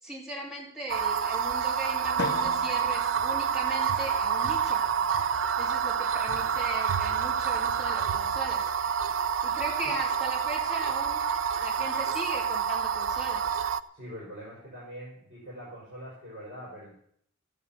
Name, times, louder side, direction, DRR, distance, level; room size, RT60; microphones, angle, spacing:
voice 1, 0.0-4.8 5.6-8.6 9.4-11.2 11.6-13.5, right 2 dB, 5° right, -4 dB, 4.2 m, -38 dB
sound 1, 0.9-13.8, right 7 dB, 85° right, 0.6 m, -28 dB
Drum, 2.2-4.2, left 4 dB, 60° left, 0.6 m, -38 dB
Liquid, 3.9-13.8, right 2 dB, 55° right, 4.0 m, -52 dB
voice 2, 13.9-16.9, equal, 40° right, -5 dB, 5.0 m, -43 dB
13.0 x 9.5 x 7.1 m, 0.69 s
head